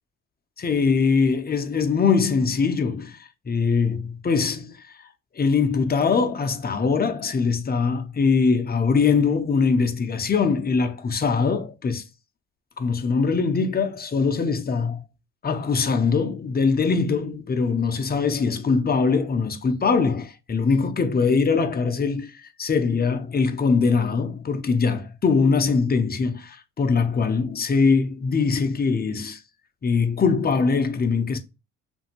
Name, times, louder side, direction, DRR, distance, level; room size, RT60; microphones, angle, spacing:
voice 1, 0.6-3.2 3.5-4.8 5.4-12.0 12.8-15.0 15.4-22.3 22.6-29.4 29.8-31.4, left 5 dB, 25° left, 0.6 m, -22 dB
2.7 x 2.6 x 2.8 m
supercardioid pair, 60°, 36 cm